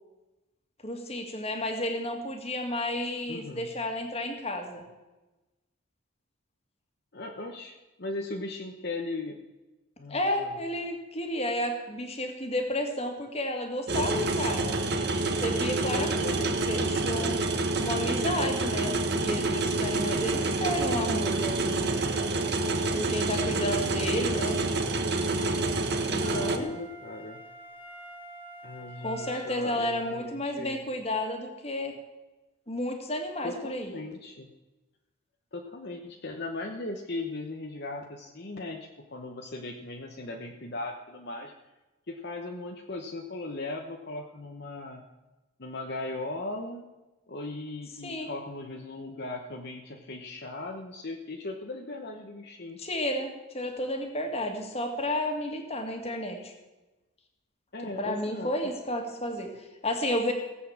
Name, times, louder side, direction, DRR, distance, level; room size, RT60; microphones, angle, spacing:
voice 1, 0.8-4.8 10.1-14.8 15.4-16.4 16.7-17.4 17.8-22.0 23.0-24.6 26.1-26.7 29.0-31.9 32.7-34.0 48.0-48.3 52.8-56.5 57.8-60.3, left 1 dB, 30° left, 4 dB, 2.1 m, -32 dB
voice 2, 3.3-3.7 7.1-9.4 10.0-10.5 16.0-16.6 23.2-24.7 26.1-27.4 28.6-30.8 33.4-34.5 35.5-41.5 42.1-45.1 45.6-46.8 47.3-52.8 57.7-58.5, left 2 dB, 50° left, 2 dB, 1.1 m, -38 dB
sound 1, 13.9-26.6, right 2 dB, 50° right, 1.4 m, -28 dB
Wind instrument woodwind instrument, 26.2-30.5 31.0-31.1, right 2 dB, 10° right, 2.5 m, -47 dB
17.5 x 8.5 x 7.2 m, 1.1 s
head